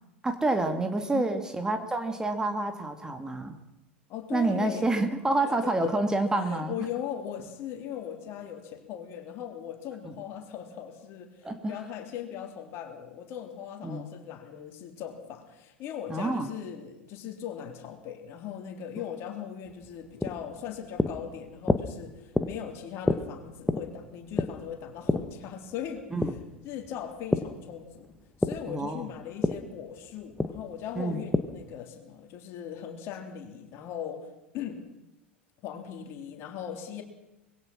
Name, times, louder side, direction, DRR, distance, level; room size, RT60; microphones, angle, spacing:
voice 1, 0.2-3.6 4.3-6.7 11.4-11.8 13.8-14.1 16.1-16.5 26.1-26.3 28.7-29.1 31.0-31.2, right 2 dB, 10° right, 7 dB, 2.2 m, -28 dB
voice 2, 4.1-4.9 5.5-6.0 6.4-26.4 26.6-28.1 28.4-34.8 35.6-37.0, left 9 dB, 40° left, 4 dB, 3.6 m, -39 dB
sound 1, 19.7-27.6 27.9-31.7, left 2 dB, 5° left, 1.4 m, -30 dB
25.0 x 22.0 x 6.1 m, 0.95 s
figure-of-eight pair, 85°, 6 cm